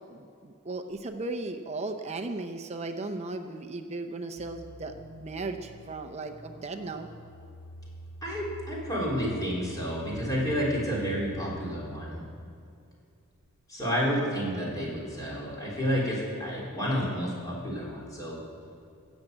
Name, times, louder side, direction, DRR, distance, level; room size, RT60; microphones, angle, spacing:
voice 1, 0.1-7.1, right 2 dB, 30° right, 5 dB, 0.6 m, -36 dB
sound 1, 4.4-12.0, right 1 dB, 70° left, 2.7 m, -45 dB
voice 2, 8.2-12.2 13.7-18.4, equal, 15° left, -5 dB, 3.6 m, -30 dB
17.0 x 7.3 x 7.8 m, 2.4 s
head